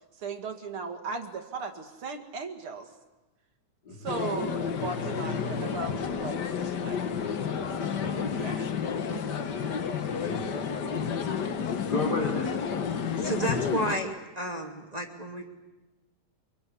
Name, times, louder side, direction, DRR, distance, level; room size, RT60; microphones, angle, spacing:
voice 1, 0.2-2.9 4.0-8.0 8.4-8.7 9.1-9.2, right 4 dB, 45° right, 5 dB, 2.9 m, -37 dB
sound 1, 4.1-14.0, left 6 dB, 50° left, 1.3 m, -31 dB
voice 2, 8.0-8.3 8.7-8.8 10.2-11.1 11.8-13.1, left 3 dB, 30° left, 1 dB, 4.2 m, -35 dB
voice 3, 13.2-14.1 14.4-15.5, right 1 dB, 15° right, 3 dB, 2.3 m, -31 dB
24.5 x 23.5 x 9.6 m, 1.1 s
omnidirectional pair, 3.5 m